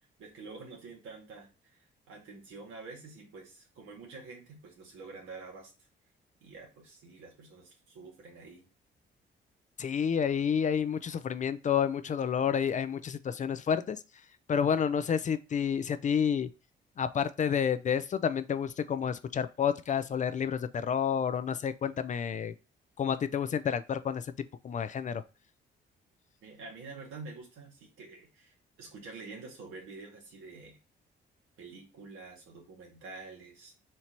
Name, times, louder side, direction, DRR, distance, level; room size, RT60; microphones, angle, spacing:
voice 1, 0.2-5.7 6.4-8.7 26.4-30.8 31.6-33.7, right 3 dB, 85° right, 2.0 m, -48 dB
voice 2, 9.8-14.0 14.5-16.5 17.0-22.5 23.0-24.3 24.6-25.2, left 7 dB, 40° left, 0.4 m, -29 dB
4.4 x 2.7 x 4.4 m
cardioid pair, 90°, 20 cm